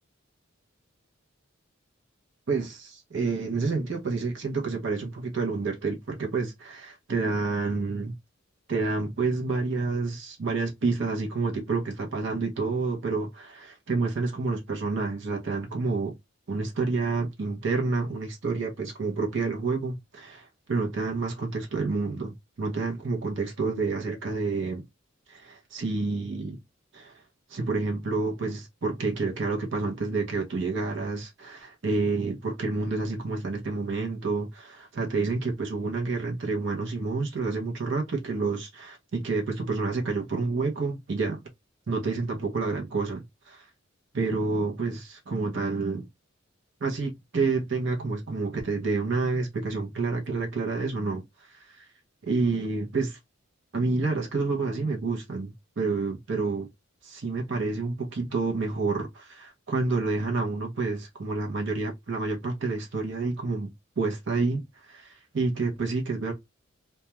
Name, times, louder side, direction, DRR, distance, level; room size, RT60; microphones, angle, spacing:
voice 1, 2.5-8.1 8.7-16.1 16.5-24.8 25.3-26.6 26.9-27.1 27.5-41.4 41.9-43.6 44.1-46.1 46.8-51.2 51.5-51.8 52.2-53.2 53.7-56.7 57.0-63.7 64.0-66.3, right 3 dB, 65° right, 0.6 m, -29 dB
2.3 x 2.2 x 2.8 m
head